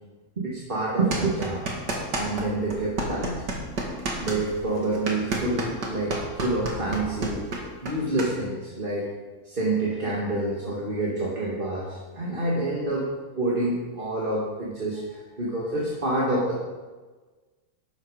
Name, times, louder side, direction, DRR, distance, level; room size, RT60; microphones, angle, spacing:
voice 1, 0.4-1.6 2.1-3.4 4.2-7.4 7.8-9.1 9.4-13.1 13.4-16.6, right 2 dB, 30° right, -3 dB, 2.2 m, -27 dB
sound 1, 1.1-2.5 2.7-8.3, right 2 dB, 70° right, 2.8 m, -30 dB
12.5 x 12.0 x 4.9 m, 1.3 s
omnidirectional pair, 1.9 m